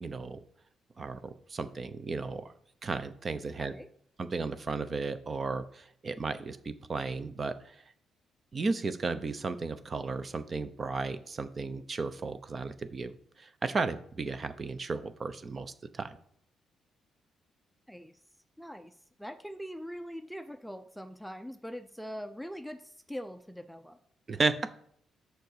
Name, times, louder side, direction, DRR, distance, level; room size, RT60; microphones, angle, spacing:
voice 1, 0.0-0.4 1.0-2.4 2.8-3.7 4.2-7.8 8.5-13.1 13.4-16.2 24.3-24.5, right 4 dB, 35° right, 11 dB, 0.8 m, -34 dB
voice 2, 3.6-3.9 17.9-18.2 18.6-18.9 19.2-24.0, equal, ahead, 8 dB, 0.6 m, -42 dB
6.6 x 4.8 x 6.7 m, 0.64 s
cardioid pair, 90°, 0 cm